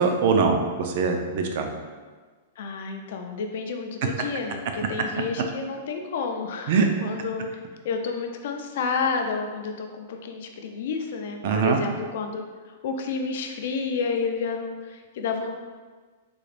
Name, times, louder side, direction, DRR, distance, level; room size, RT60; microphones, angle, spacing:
voice 1, 0.0-1.7 6.7-6.9 11.4-11.8, right 5 dB, 45° right, 4 dB, 0.4 m, -22 dB
voice 2, 2.6-7.6 7.8-15.6, left 5 dB, 55° left, 4 dB, 0.4 m, -30 dB
3.8 x 2.4 x 3.2 m, 1.4 s
supercardioid pair, 170°, 0 cm